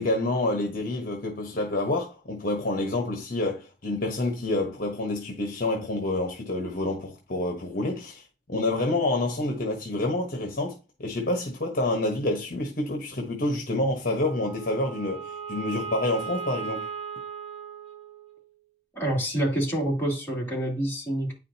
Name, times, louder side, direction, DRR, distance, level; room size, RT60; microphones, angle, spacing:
voice 1, 0.0-8.2 8.5-10.7 11.0-16.9, left 2 dB, 50° left, 1.2 m, -28 dB
Wind instrument woodwind instrument, 14.1-18.6, right 6 dB, 35° right, 1.8 m, -37 dB
voice 2, 18.9-21.4, right 1 dB, 15° left, 2.8 m, -27 dB
9.5 x 5.0 x 2.8 m
head